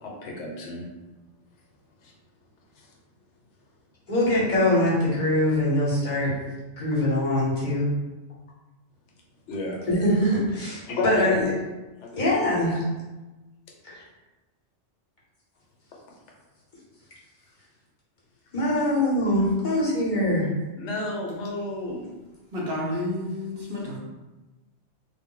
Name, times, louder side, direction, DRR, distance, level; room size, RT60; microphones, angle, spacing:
voice 1, 0.0-0.8 2.0-2.1 2.8-2.9 9.5-9.8 10.9-11.4 12.0-12.2 12.5-12.7 20.8-22.0, left 2 dB, 75° left, -1 dB, 0.9 m, -31 dB
voice 2, 4.1-6.3 6.8-7.9 9.9-11.5 12.1-12.8 13.8-14.0 18.5-20.5, left 1 dB, 45° left, -6 dB, 0.8 m, -23 dB
voice 3, 22.5-24.0, left 1 dB, 60° right, -4 dB, 0.7 m, -30 dB
2.1 x 2.0 x 3.7 m, 1.1 s
omnidirectional pair, 1.2 m